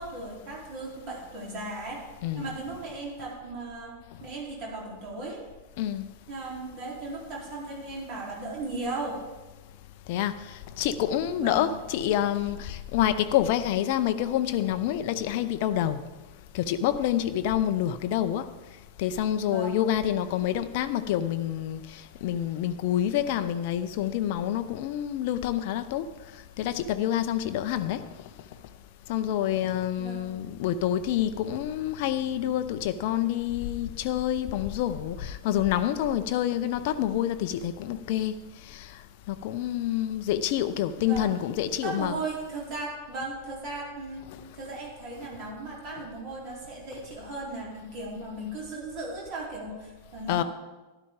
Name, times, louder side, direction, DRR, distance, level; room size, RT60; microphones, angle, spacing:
voice 1, 0.0-2.0 2.3-3.9 4.2-5.4 6.3-9.2 11.4-11.7 19.4-19.8 30.0-30.3 41.0-41.3 41.8-44.3 44.5-50.4, right 2 dB, 40° right, 3.6 m, -36 dB
voice 2, 5.8-6.1 10.1-16.0 16.5-18.5 19.0-26.1 26.6-28.0 29.1-38.4 38.7-38.9 39.3-42.2 50.3-50.4, left 11 dB, 50° left, 0.5 m, -27 dB
12.5 x 11.5 x 3.7 m
figure-of-eight pair, 90°, 0 cm